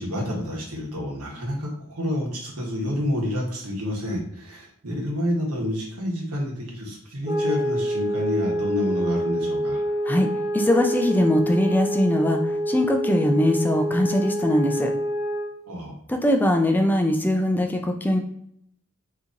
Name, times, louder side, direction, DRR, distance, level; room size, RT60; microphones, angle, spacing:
voice 1, 0.0-9.8 15.7-15.9, left 1 dB, 90° right, -2 dB, 1.2 m, -29 dB
sound 1, 7.2-15.6, equal, 30° right, 1.1 m, -27 dB
voice 2, 10.5-14.9 16.1-18.2, left 1 dB, 10° left, 4 dB, 0.3 m, -21 dB
2.8 x 2.7 x 3.7 m, 0.72 s
head